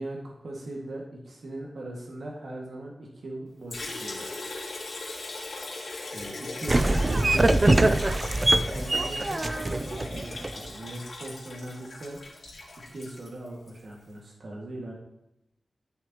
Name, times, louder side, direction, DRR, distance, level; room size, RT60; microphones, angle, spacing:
voice 1, 0.0-4.3 6.1-7.4 7.7-8.0 8.7-12.2 12.9-14.9, right 1 dB, 70° right, -2 dB, 2.0 m, -39 dB
Liquid, 3.7-13.8, left 2 dB, 75° left, 3.2 m, -39 dB
sound 1, 6.7-10.7, right 2 dB, 30° right, 0.5 m, -23 dB
13.5 x 6.3 x 3.0 m, 0.86 s
wide cardioid pair, 120°, 0 cm